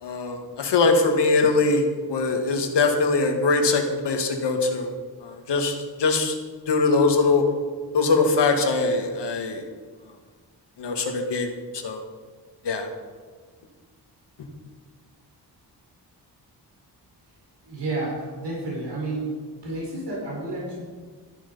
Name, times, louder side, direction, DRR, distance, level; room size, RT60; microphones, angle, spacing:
voice 1, 0.0-4.9 5.2-6.4 6.7-7.4 7.9-9.6 10.8-12.0 12.6-12.9, left 3 dB, 85° left, 4 dB, 1.8 m, -22 dB
voice 2, 17.6-19.3 19.6-20.8, right 2 dB, 80° right, -5 dB, 4.8 m, -30 dB
13.5 x 11.0 x 5.3 m, 1.5 s
wide cardioid pair, 175°, 41 cm